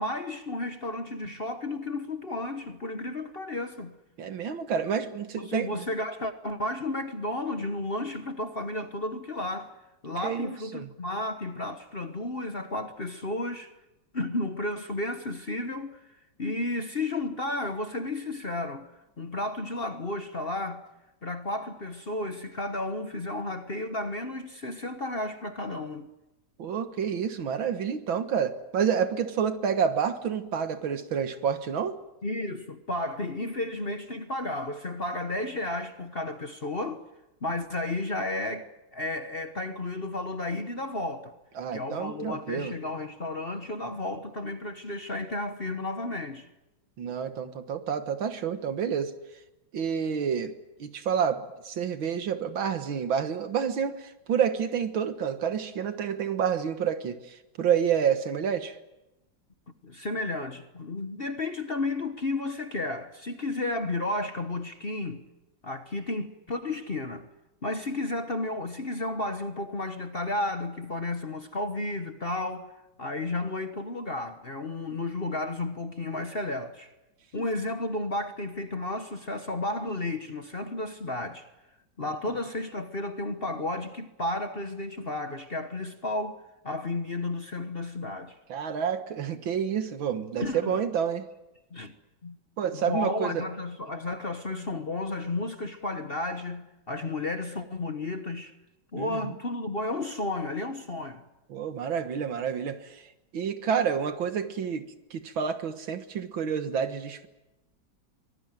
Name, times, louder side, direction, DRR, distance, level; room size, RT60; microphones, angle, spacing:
voice 1, 0.0-4.0 5.4-9.7 10.0-13.7 14.1-16.0 16.4-18.9 19.2-20.8 21.2-26.1 32.2-37.0 37.4-38.7 38.9-41.3 41.7-46.5 59.8-65.2 65.6-67.3 67.6-72.7 73.0-76.9 77.3-81.5 82.0-88.4 90.4-90.8 91.7-91.9 92.2-92.4 92.7-98.5 98.9-101.2, left 2 dB, 35° left, 1.1 m, -32 dB
voice 2, 4.2-5.7 10.2-10.9 26.6-31.9 41.6-42.7 47.0-49.1 49.7-50.5 50.8-58.8 88.5-91.2 92.6-93.4 99.0-99.2 101.5-103.0 103.3-104.9 105.1-107.3, right 7 dB, 75° right, 2.2 m, -29 dB
24.5 x 18.5 x 9.1 m
omnidirectional pair, 2.2 m